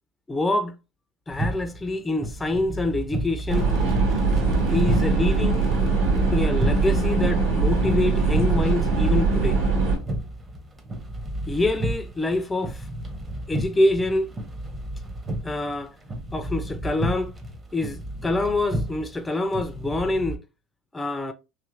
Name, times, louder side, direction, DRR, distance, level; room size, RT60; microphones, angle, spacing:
voice 1, 0.3-0.8 1.3-3.7 4.7-5.6 6.3-9.6 11.5-12.9 13.5-14.3 15.4-15.9 16.3-17.3 17.7-20.4 20.9-21.3, left 2 dB, 15° left, 0.3 m, -26 dB
sound 1, 1.3-20.4, right 1 dB, 25° right, 0.7 m, -33 dB
sound 2, 3.5-10.0, right 3 dB, 75° right, 1.6 m, -21 dB
3.0 x 2.7 x 2.5 m
supercardioid pair, 95°, 0 cm